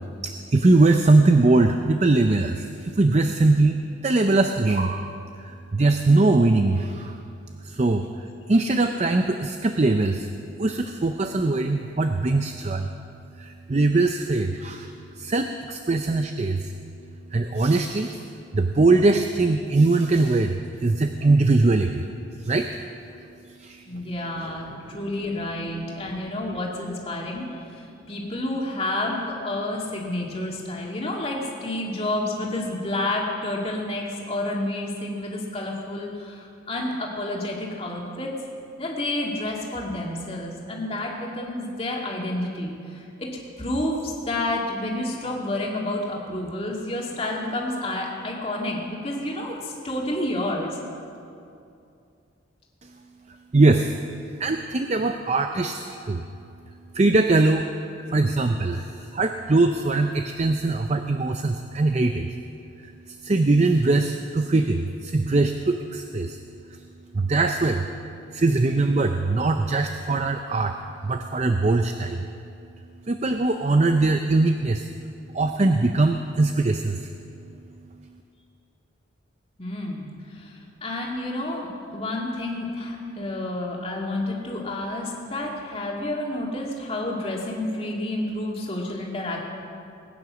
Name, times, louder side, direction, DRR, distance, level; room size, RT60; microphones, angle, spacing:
voice 1, 0.2-5.1 5.4-7.2 7.6-10.3 10.6-12.9 13.4-16.7 17.3-18.2 18.5-22.1 22.4-22.8 23.5-23.9 24.9-25.0 53.5-54.0 54.4-56.2 56.9-57.7 58.1-62.4 62.8-66.4 66.7-66.8 67.1-67.9 68.3-72.3 73.1-74.9 75.3-77.1, right 2 dB, 35° right, 6 dB, 0.5 m, -21 dB
voice 2, 23.9-38.3 38.8-43.3 43.6-50.8 55.9-56.0 79.6-89.4, left 1 dB, 30° left, -2 dB, 2.3 m, -30 dB
20.5 x 9.6 x 6.2 m, 2.6 s
head